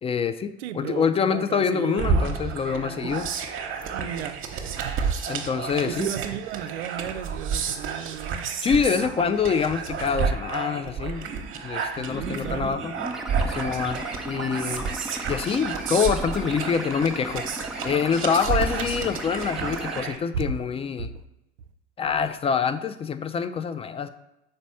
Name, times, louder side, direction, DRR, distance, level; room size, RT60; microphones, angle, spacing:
voice 1, 0.0-3.3 5.3-6.1 8.6-11.3 11.6-12.9 13.5-14.9 15.3-17.4 17.8-21.1 22.0-24.1, left 6 dB, 20° left, 0.4 m, -26 dB
voice 2, 0.6-2.2 3.9-5.0 5.5-8.5 12.0-12.8 20.3-20.5 21.1-21.2, right 8 dB, 70° right, 0.5 m, -34 dB
sound 1, 2.0-20.2, right 5 dB, 35° right, 0.9 m, -30 dB
sound 2, 12.0-20.0, right 1 dB, ahead, 0.7 m, -36 dB
5.2 x 4.1 x 5.5 m
figure-of-eight pair, 75°, 34 cm